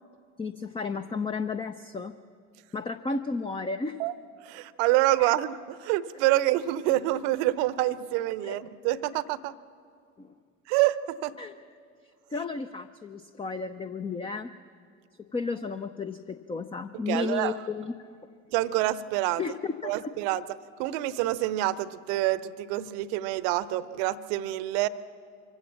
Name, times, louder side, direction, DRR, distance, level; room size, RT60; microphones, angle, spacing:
voice 1, 0.4-2.1 2.7-4.0 5.2-5.3 8.4-8.6 10.2-10.3 11.4-11.5 12.3-14.5 15.3-18.1 19.4-20.1, left 4 dB, 15° left, 9 dB, 0.6 m, -33 dB
voice 2, 4.4-9.5 10.7-11.3 17.1-17.5 18.5-19.4 19.8-20.4 20.8-24.9, right 15 dB, 55° right, 17 dB, 0.8 m, -27 dB
24.5 x 15.5 x 7.2 m, 2.2 s
figure-of-eight pair, 65°, 40 cm